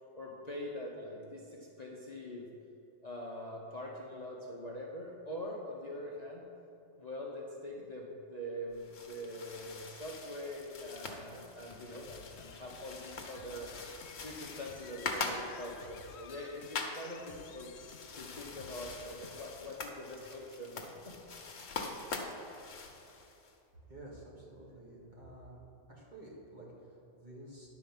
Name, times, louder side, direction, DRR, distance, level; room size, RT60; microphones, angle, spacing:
voice 1, 0.1-2.5 3.0-6.4 7.0-13.7 14.2-17.7 18.2-21.2, left 1 dB, 35° left, -3 dB, 0.9 m, -44 dB
sound 1, 8.7-23.5, left 4 dB, 80° left, 1.4 m, -44 dB
sound 2, 12.1-19.8, left 7 dB, 65° left, 0.8 m, -54 dB
voice 2, 23.9-25.6 25.9-27.7, right 1 dB, 35° right, -5 dB, 2.1 m, -51 dB
10.5 x 4.7 x 7.2 m, 2.7 s
omnidirectional pair, 1.3 m